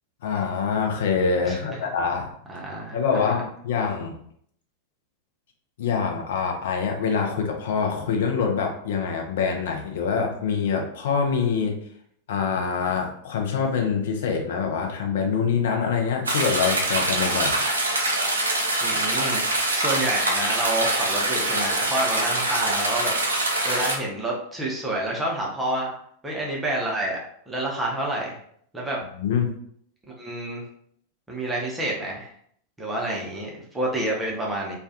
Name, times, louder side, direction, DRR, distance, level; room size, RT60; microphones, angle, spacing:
voice 1, 0.2-2.3 2.9-4.2 5.8-11.8 12.3-17.6 29.1-29.5, left 6 dB, 55° left, 3 dB, 0.5 m, -25 dB
voice 2, 1.5-1.8 2.5-3.4 18.8-19.5 19.7-23.1 23.6-25.9 26.2-27.2 27.5-28.3 28.7-29.0 30.2-30.6 31.3-32.3 32.8-34.8, right 1 dB, 10° right, -3 dB, 0.6 m, -28 dB
sound 1, 16.2-24.0, right 2 dB, 75° right, 0.5 m, -24 dB
2.3 x 2.1 x 2.7 m, 0.65 s
figure-of-eight pair, 90°, 0 cm